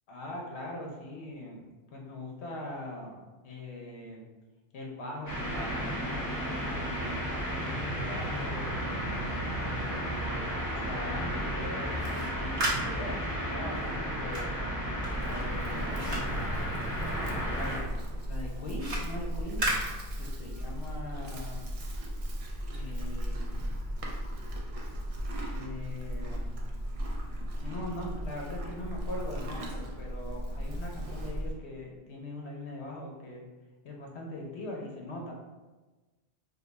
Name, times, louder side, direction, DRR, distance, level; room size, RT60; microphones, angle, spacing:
voice 1, 0.1-4.2 4.7-7.3 7.6-9.0 9.7-14.5 15.2-16.4 17.5-17.8 18.2-19.6 20.2-21.6 22.7-23.7 25.5-26.5 27.6-33.4 33.8-35.3, left 1 dB, 80° left, -1 dB, 1.0 m, -41 dB
sound 1, 5.3-17.8, equal, 20° left, 0.9 m, -33 dB
sound 2, 11.8-17.4 17.7-20.6, right 1 dB, 80° right, 1.1 m, -36 dB
Livestock farm animals working animals, 15.0-31.6, equal, 50° right, 0.4 m, -36 dB
2.6 x 2.3 x 3.9 m, 1.2 s
omnidirectional pair, 1.1 m